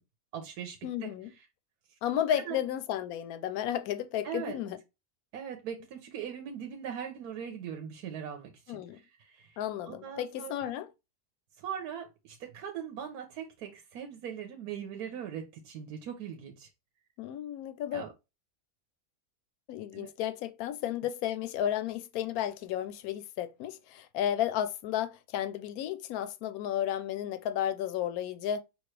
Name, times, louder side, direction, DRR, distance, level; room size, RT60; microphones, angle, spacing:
voice 1, 0.3-1.5 2.3-2.6 4.2-4.6 5.3-9.6 9.9-10.7 11.6-16.7 17.9-18.1 19.9-20.1, right 8 dB, 85° right, 1.2 m, -40 dB
voice 2, 0.8-1.3 2.0-4.8 8.7-9.0 9.6-10.9 17.2-18.0 19.7-28.6, left 11 dB, 80° left, 1.1 m, -33 dB
5.2 x 3.0 x 3.2 m
omnidirectional pair, 1.6 m